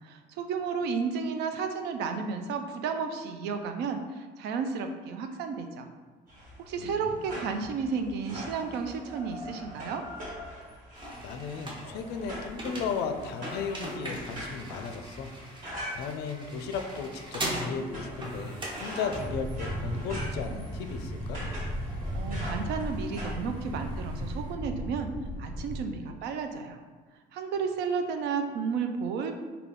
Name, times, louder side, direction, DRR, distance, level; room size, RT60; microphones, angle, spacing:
voice 1, 0.0-5.9 6.6-10.0 22.1-25.1 25.4-26.8 27.3-29.4, right 5 dB, 80° right, 6 dB, 0.4 m, -32 dB
sound 1, 6.3-23.3, equal, 55° right, 1.4 m, -43 dB
voice 2, 6.8-7.2 11.2-15.3 15.6-21.4, left 5 dB, 75° left, 6 dB, 0.4 m, -35 dB
sound 2, 10.9-24.5, right 1 dB, 30° right, 0.7 m, -42 dB
sound 3, 19.1-25.8, equal, 10° left, 0.4 m, -35 dB
3.4 x 2.3 x 3.6 m, 1.4 s
cardioid pair, 110°, 17 cm